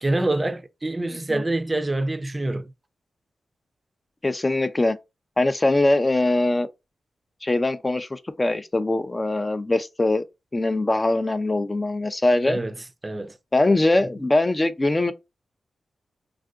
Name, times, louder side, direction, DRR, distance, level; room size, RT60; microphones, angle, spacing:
voice 1, 0.0-2.7 12.5-12.7 13.0-13.4, right 2 dB, 25° right, 0.5 m, -26 dB
voice 2, 4.2-4.9 5.4-6.7 7.4-10.2 10.5-12.6 13.5-15.1, left 2 dB, 25° left, 0.4 m, -22 dB
3.5 x 2.5 x 2.3 m
cardioid pair, 60°, 0 cm